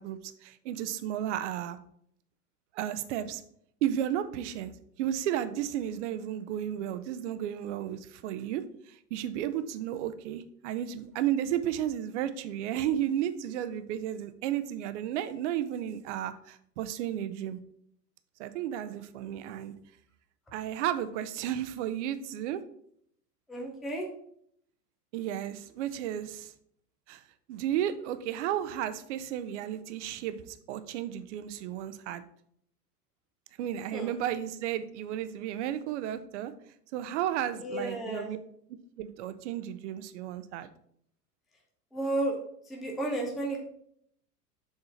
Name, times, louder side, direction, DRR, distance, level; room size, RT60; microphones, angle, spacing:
voice 1, 0.0-1.8 2.7-3.4 3.8-4.7 5.0-17.6 18.4-19.7 20.5-22.6 25.1-26.5 27.1-27.2 27.5-32.2 33.6-36.5 36.9-38.4 39.0-40.7, right 11 dB, 45° right, 11 dB, 0.6 m, -33 dB
voice 2, 23.5-24.1 33.9-34.1 37.6-38.3 41.9-42.4 42.7-43.7, right 1 dB, ahead, 0 dB, 0.4 m, -32 dB
7.1 x 3.7 x 4.2 m, 0.69 s
figure-of-eight pair, 90°, 48 cm